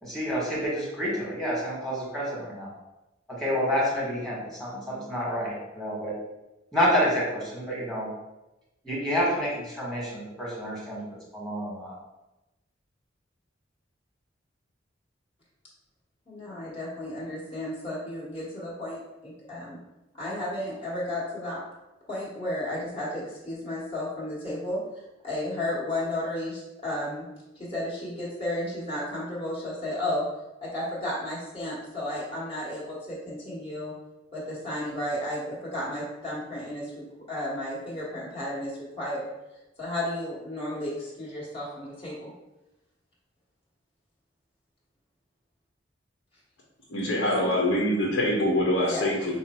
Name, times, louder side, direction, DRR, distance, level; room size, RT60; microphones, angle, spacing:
voice 1, 0.0-2.7 3.3-6.1 6.7-8.1 8.8-11.0 11.3-11.9, equal, ahead, -6 dB, 1.6 m, -28 dB
voice 2, 16.3-19.8 20.2-21.6 22.1-24.8 25.2-27.2 27.6-30.2 30.6-33.9 34.3-39.3 39.8-42.3 47.2-47.5 48.8-49.3, left 1 dB, 30° left, -7 dB, 1.6 m, -33 dB
voice 3, 46.9-49.4, left 1 dB, 70° left, -3 dB, 1.0 m, -24 dB
5.7 x 2.1 x 4.3 m, 0.98 s
head